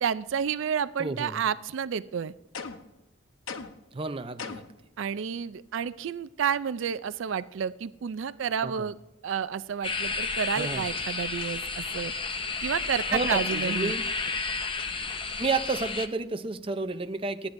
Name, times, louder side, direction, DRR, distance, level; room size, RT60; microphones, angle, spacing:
voice 1, 0.0-2.3 5.0-9.0 9.2-12.1 12.6-13.9, right 7 dB, 70° right, 15 dB, 0.4 m, -30 dB
voice 2, 1.0-1.4 3.9-4.7 8.6-8.9 10.6-10.9 13.1-14.0 15.4-17.5, right 3 dB, 25° right, 9 dB, 0.6 m, -31 dB
sound 1, 2.5-3.0 3.5-3.9 4.4-4.8, left 5 dB, 85° left, 0.9 m, -38 dB
sound 2, 9.8-16.1, left 4 dB, 25° left, 0.6 m, -31 dB
29.0 x 9.7 x 2.6 m, 0.98 s
head